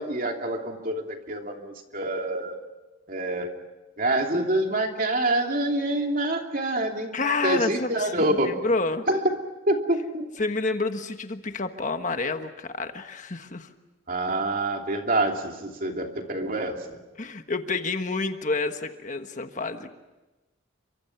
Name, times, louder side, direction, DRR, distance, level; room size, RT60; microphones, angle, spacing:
voice 1, 0.0-2.6 3.1-3.5 4.0-7.1 7.4-8.6 9.1-9.4 9.7-10.3 14.1-17.0, right 1 dB, 45° right, 3 dB, 2.9 m, -26 dB
voice 2, 7.1-9.1 10.4-13.7 17.2-19.9, left 3 dB, 40° left, 7 dB, 1.3 m, -29 dB
30.0 x 25.0 x 6.0 m, 1.1 s
head